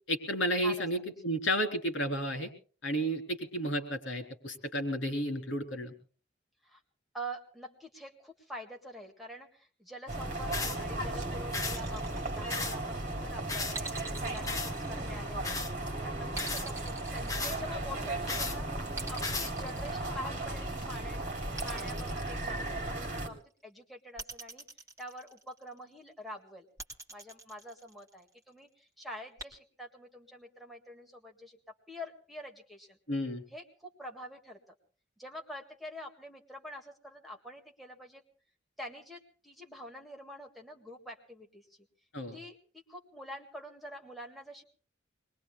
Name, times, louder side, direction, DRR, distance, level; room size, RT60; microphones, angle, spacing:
voice 1, 0.1-2.5 2.8-5.9 33.1-33.4 42.1-42.4, equal, 75° left, 6 dB, 3.5 m, -32 dB
voice 2, 7.1-15.6 16.0-18.7 19.0-21.3 21.6-24.6 25.0-26.7 27.1-31.6 31.9-33.0 33.5-34.6 35.2-38.2 38.8-41.7 42.3-42.6 42.9-44.6, equal, ahead, 1 dB, 1.8 m, -46 dB
sound 1, 10.1-23.3, right 2 dB, 40° right, 3.5 m, -36 dB
sound 2, 10.5-10.8 11.5-11.8 12.5-12.8 13.5-13.8 14.5-14.7 15.4-15.7 16.4-16.7 17.3-17.6 18.3-18.6 19.2-19.5, left 4 dB, 15° left, 1.2 m, -35 dB
sound 3, 11.5-13.0 13.7-15.6 16.3-18.1 18.9-20.7 21.6-23.2 24.2-25.7 26.8-28.3 29.4-29.5, right 3 dB, 15° right, 2.8 m, -44 dB
25.5 x 21.5 x 2.2 m, 0.42 s
head